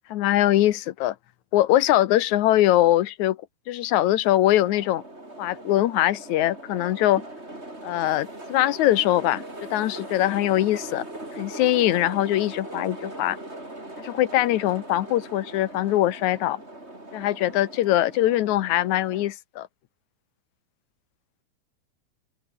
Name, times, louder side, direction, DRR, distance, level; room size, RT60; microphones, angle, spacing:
voice 1, 0.1-1.2 1.5-3.4 3.7-5.0 5.4-7.2 7.8-9.4 9.7-11.0 11.3-13.4 14.0-16.6 17.1-19.7, left 14 dB, 70° left, 2.2 m, -22 dB
sound 1, 4.6-19.3, right 1 dB, 20° right, 6.6 m, -40 dB
open air
omnidirectional pair, 3.7 m